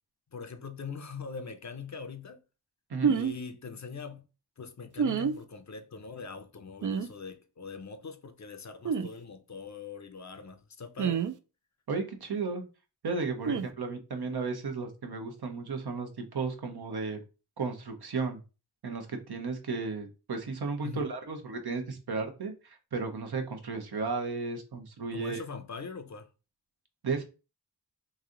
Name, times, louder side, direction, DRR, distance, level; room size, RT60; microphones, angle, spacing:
voice 1, 0.3-2.4 3.0-4.2 4.6-11.2 13.4-13.7 20.8-21.1 25.1-26.3, left 5 dB, 45° left, 0.6 m, -42 dB
sound 1, 3.0-3.3 5.0-5.4 6.8-7.1 8.8-9.1 11.0-11.3 13.4-13.7, right 6 dB, 50° right, 0.4 m, -27 dB
voice 2, 11.9-12.6 13.0-17.2 17.6-18.4 18.8-25.4 27.0-27.2, right 4 dB, 70° right, 0.9 m, -34 dB
3.1 x 2.7 x 3.7 m
wide cardioid pair, 60°, 40 cm